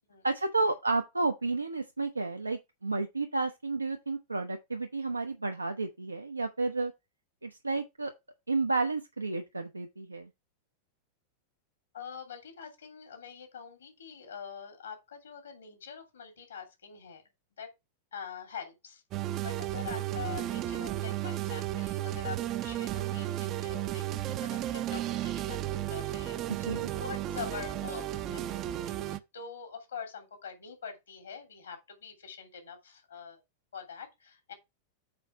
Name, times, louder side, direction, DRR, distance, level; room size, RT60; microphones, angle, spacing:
voice 1, 0.2-6.9 7.4-8.1 8.5-10.3 26.6-26.9, right 3 dB, 80° right, 0.7 m, -31 dB
voice 2, 11.9-17.2 17.6-17.7 18.1-19.0 19.4-26.4 26.9-33.4 33.7-34.5, left 6 dB, 70° left, 2.7 m, -44 dB
sound 1, 19.1-29.2, right 13 dB, 35° right, 0.6 m, -34 dB
6.8 x 4.9 x 4.6 m
figure-of-eight pair, 90°, 0 cm